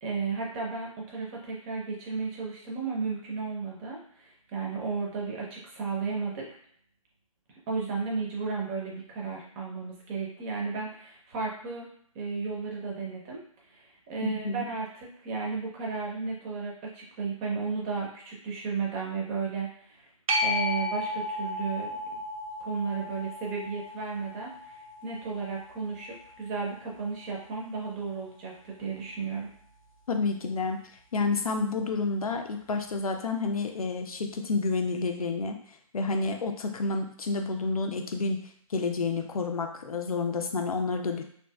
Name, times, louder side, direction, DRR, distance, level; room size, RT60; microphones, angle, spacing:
voice 1, 0.0-6.5 7.7-11.9 12.1-13.4 13.7-20.1 20.4-22.0 22.6-29.5, right 4 dB, 20° right, -2 dB, 0.6 m, -34 dB
sound 1, 20.3-27.4 33.0-33.1, left 1 dB, 70° right, 0.6 m, -34 dB
voice 2, 30.1-30.8 31.1-35.6 35.9-38.4 38.7-41.2, left 3 dB, 75° left, 5 dB, 0.5 m, -29 dB
2.9 x 2.6 x 2.2 m, 0.62 s
figure-of-eight pair, 140°, 19 cm